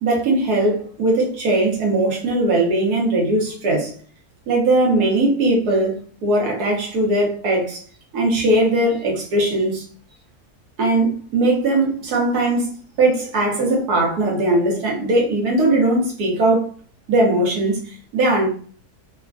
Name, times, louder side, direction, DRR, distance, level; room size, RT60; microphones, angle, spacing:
voice 1, 0.0-3.9 4.5-7.8 8.1-9.8 10.8-16.7 17.1-18.5, right 2 dB, 75° right, 1.5 m, -19 dB
3.5 x 2.2 x 2.4 m
omnidirectional pair, 1.6 m